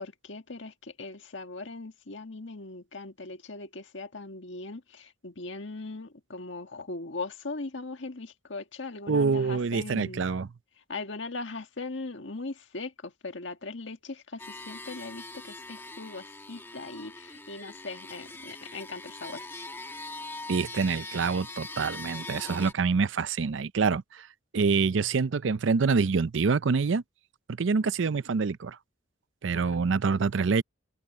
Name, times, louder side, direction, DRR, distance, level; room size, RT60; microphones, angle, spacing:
voice 1, 0.0-10.3 10.9-19.4 29.5-29.8, left 3 dB, 65° left, 1.7 m, -39 dB
voice 2, 9.1-10.5 20.5-24.3 24.5-27.0 27.5-28.8 29.4-30.6, right 5 dB, 70° right, 0.5 m, -26 dB
sound 1, 14.4-22.7, left 2 dB, 10° left, 1.7 m, -42 dB
open air
head